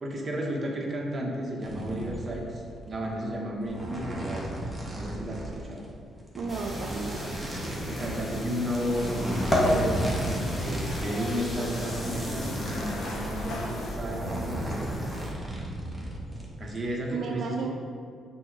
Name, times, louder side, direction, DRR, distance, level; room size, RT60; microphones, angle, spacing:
voice 1, 0.0-4.6 4.9-5.8 7.8-14.9 16.6-17.7, equal, 30° right, -2 dB, 1.3 m, -33 dB
sound 1, 1.6-3.4 3.6-5.9 6.2-11.0 11.3-16.8, right 1 dB, 10° right, 1.3 m, -36 dB
voice 2, 6.3-7.4 17.1-17.7, right 5 dB, 65° right, 1 dB, 0.4 m, -33 dB
sound 2, 6.5-15.3, left 1 dB, 15° left, 1.3 m, -33 dB
sound 3, 8.8-14.0, left 2 dB, 70° left, 0.9 m, -39 dB
6.0 x 3.8 x 4.9 m, 2.2 s
cardioid pair, 90°, 0 cm